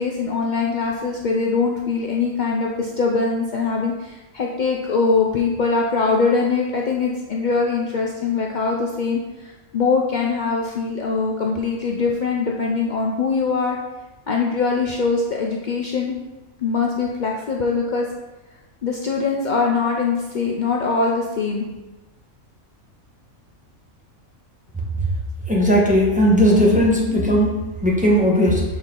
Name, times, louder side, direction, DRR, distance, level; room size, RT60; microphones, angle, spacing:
voice 1, 0.0-13.8 14.3-16.1 16.6-18.1 18.8-21.7, left 4 dB, 75° left, -1 dB, 0.4 m, -22 dB
voice 2, 25.5-28.6, equal, 5° right, -3 dB, 0.8 m, -17 dB
6.4 x 4.1 x 3.7 m, 1.1 s
omnidirectional pair, 1.5 m